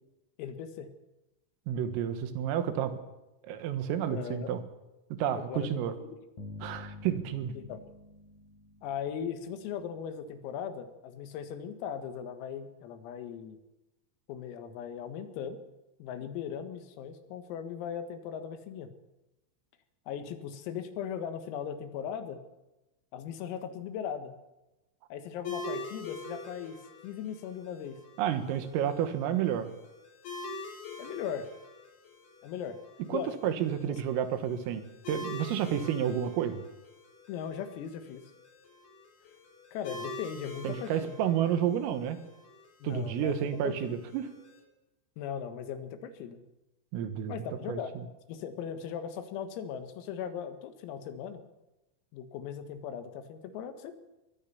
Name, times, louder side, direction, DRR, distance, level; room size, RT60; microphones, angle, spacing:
voice 1, 0.4-0.9 4.1-4.5 5.3-6.2 7.5-7.8 8.8-13.6 14.3-15.6 16.0-18.9 20.1-22.4 23.1-24.4 25.1-28.0 31.0-31.5 32.4-32.8 33.1-33.3 33.8-34.0 37.3-38.3 39.7-41.2 42.8-44.0 45.2-46.4 47.3-47.9 48.3-51.4 52.1-53.9, left 8 dB, 85° left, 9 dB, 4.3 m, -38 dB
voice 2, 1.7-3.0 3.5-4.6 5.1-5.9 6.6-7.5 28.2-29.7 33.1-36.6 40.6-42.2 42.8-44.3 46.9-47.3 47.7-48.1, right 9 dB, 80° right, 10 dB, 4.1 m, -30 dB
sound 1, 6.4-9.8, left 2 dB, 35° left, 5.0 m, -48 dB
sound 2, 25.4-44.6, left 3 dB, 60° left, 6.1 m, -45 dB
23.0 x 18.5 x 7.1 m, 1.0 s
omnidirectional pair, 6.0 m